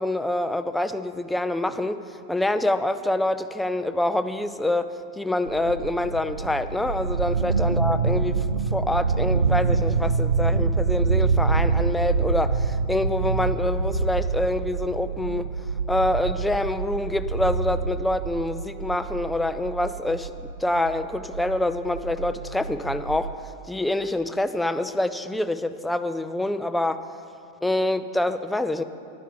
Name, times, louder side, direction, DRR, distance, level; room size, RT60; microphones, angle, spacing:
voice 1, 0.0-4.9 5.2-15.4 15.9-23.3 23.7-27.1 27.6-28.8, left 1 dB, 5° left, 11 dB, 0.4 m, -26 dB
sound 1, 5.5-23.3, right 4 dB, 75° right, 0.3 m, -26 dB
10.0 x 10.0 x 5.0 m, 2.6 s
figure-of-eight pair, 90°, 0 cm